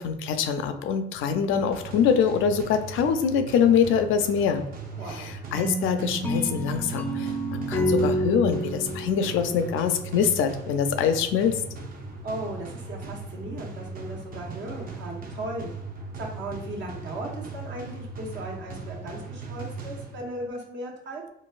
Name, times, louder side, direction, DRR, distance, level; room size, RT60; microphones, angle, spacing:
voice 1, 0.0-4.7 5.1-11.6, left 7 dB, 85° left, 8 dB, 0.4 m, -24 dB
sound 1, 1.5-20.5, right 3 dB, 45° right, 0.6 m, -39 dB
voice 2, 5.0-5.3 12.2-15.7 16.2-21.2, right 1 dB, 70° right, -1 dB, 0.9 m, -37 dB
sound 2, 5.5-10.4, right 1 dB, 10° left, 0.4 m, -29 dB
3.9 x 2.2 x 2.4 m, 0.80 s
cardioid pair, 90°, 20 cm